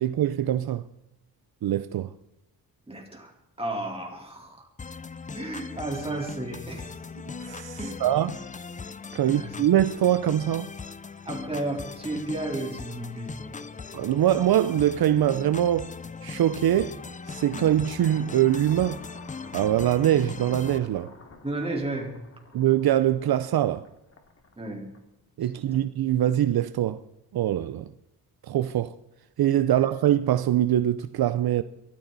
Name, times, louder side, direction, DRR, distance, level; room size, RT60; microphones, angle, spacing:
voice 1, 0.0-0.8 1.6-2.1 7.4-8.4 9.1-10.7 13.9-15.9 16.2-17.0 17.3-19.0 19.5-21.1 22.5-23.9 25.4-27.0 27.3-27.9 28.5-28.9 29.4-31.6, right 11 dB, 70° right, 0.7 m, -23 dB
voice 2, 2.9-4.7 5.4-6.9 7.8-8.0 9.2-9.5 11.2-13.7 21.4-22.2 24.6-24.9 25.7-25.8 29.7-29.8, right 2 dB, 15° right, 3.9 m, -33 dB
sound 1, 4.8-20.8, left 5 dB, 20° left, 0.5 m, -39 dB
sound 2, 17.1-25.3, left 3 dB, 40° left, 2.5 m, -51 dB
23.0 x 14.5 x 4.1 m
wide cardioid pair, 125°, 38 cm